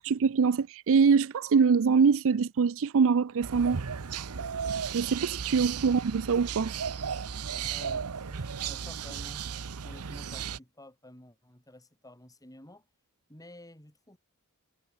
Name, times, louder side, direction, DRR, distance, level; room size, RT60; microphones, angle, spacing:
voice 1, 0.0-3.8 4.9-6.8, right 5 dB, 65° right, 0.5 m, -24 dB
sound 1, 3.4-10.6, right 7 dB, 90° right, 0.8 m, -35 dB
voice 2, 7.7-9.4 9.8-12.8 13.3-14.2, left 1 dB, 15° left, 6.7 m, -51 dB
head